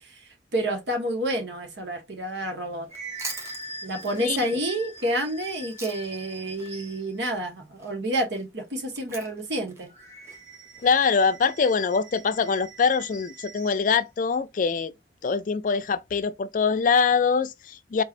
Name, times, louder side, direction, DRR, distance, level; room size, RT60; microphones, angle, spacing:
voice 1, 0.0-2.9 3.8-9.9, right 1 dB, 85° right, 1.4 m, -29 dB
sound 1, 2.5-7.2 9.9-13.9, right 2 dB, 40° right, 1.3 m, -43 dB
Chewing mastication, 2.8-6.3 6.6-10.9, right 2 dB, 15° right, 1.0 m, -43 dB
voice 2, 10.8-14.9 15.2-18.0, left 5 dB, 50° left, 0.4 m, -23 dB
4.5 x 3.2 x 2.5 m
head